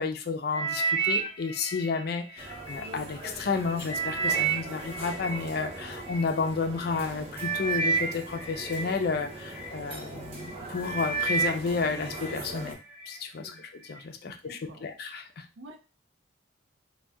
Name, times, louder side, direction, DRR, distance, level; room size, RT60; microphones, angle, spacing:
voice 1, 0.0-12.8 13.1-15.5, left 4 dB, 50° left, 6 dB, 0.4 m, -31 dB
sound 1, 0.5-2.9 3.4-6.2 6.9-7.1 7.3-9.7 10.2-10.5 10.8-12.3 12.7-13.2 13.8-13.9, right 5 dB, 20° left, 0.7 m, -31 dB
sound 2, 2.4-12.7, right 2 dB, 30° right, 0.6 m, -41 dB
voice 2, 14.2-14.8 15.6-15.8, right 2 dB, 80° right, 4 dB, 0.6 m, -49 dB
2.6 x 2.2 x 3.4 m, 0.32 s
head